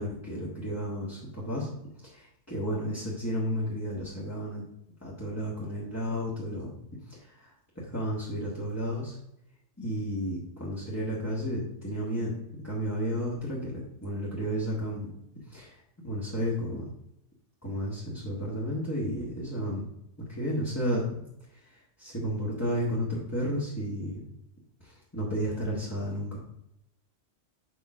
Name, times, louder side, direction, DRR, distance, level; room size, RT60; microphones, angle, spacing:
voice 1, 0.0-1.7 2.0-4.6 5.0-6.7 7.1-9.2 9.8-15.1 15.5-15.8 16.0-16.8 17.6-19.9 20.2-21.0 21.5-24.2 24.8-26.4, equal, 15° left, -6 dB, 1.4 m, -32 dB
5.1 x 4.8 x 6.0 m, 0.80 s
omnidirectional pair, 1.2 m